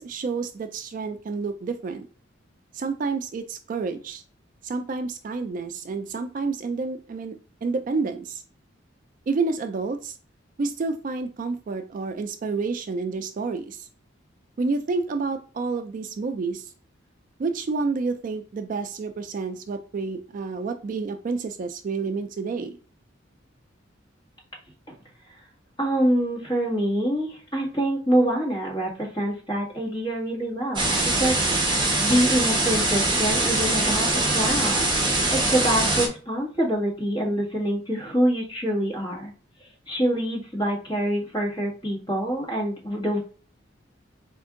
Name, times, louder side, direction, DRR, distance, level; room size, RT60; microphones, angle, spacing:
voice 1, 0.0-2.1 2.7-4.2 4.6-8.4 9.3-10.2 10.6-13.9 14.6-16.7 17.4-22.8, right 4 dB, 45° right, 8 dB, 0.3 m, -29 dB
voice 2, 25.8-31.4 31.6-39.3 39.6-43.2, right 1 dB, 20° left, -3 dB, 1.6 m, -26 dB
sound 1, 30.8-36.1, right 2 dB, 25° right, 0.9 m, -23 dB
4.3 x 2.6 x 3.6 m, 0.38 s
head